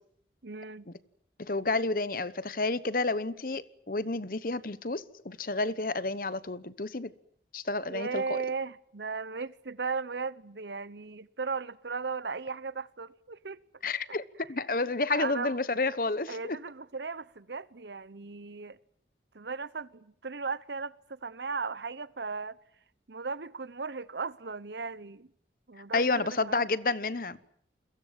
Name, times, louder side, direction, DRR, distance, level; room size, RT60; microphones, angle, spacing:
voice 1, 0.4-0.9 7.9-13.6 15.1-15.6 16.3-18.8 19.3-22.6 23.1-25.3 25.7-26.7, right 4 dB, 80° right, 1.0 m, -36 dB
voice 2, 1.4-7.1 7.5-8.4 13.8-16.6 25.9-27.4, left 3 dB, 50° left, 1.0 m, -30 dB
29.0 x 22.5 x 7.4 m
head